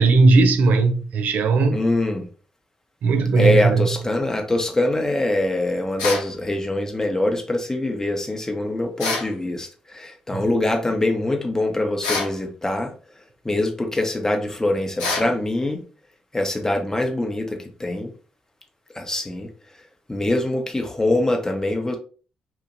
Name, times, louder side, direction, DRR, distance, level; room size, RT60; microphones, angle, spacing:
voice 1, 0.0-1.8 3.0-4.0, right 3 dB, 65° right, 0.4 m, -17 dB
voice 2, 1.7-2.3 3.4-12.9 13.4-15.8 16.3-18.1 18.9-19.5 20.1-22.0, left 1 dB, 15° left, 0.9 m, -23 dB
sound 1, 6.0-6.3 9.0-9.3 12.0-12.4 15.0-15.3, left 3 dB, 85° left, 0.6 m, -25 dB
2.9 x 2.5 x 2.6 m
hypercardioid pair, 40°, 3 cm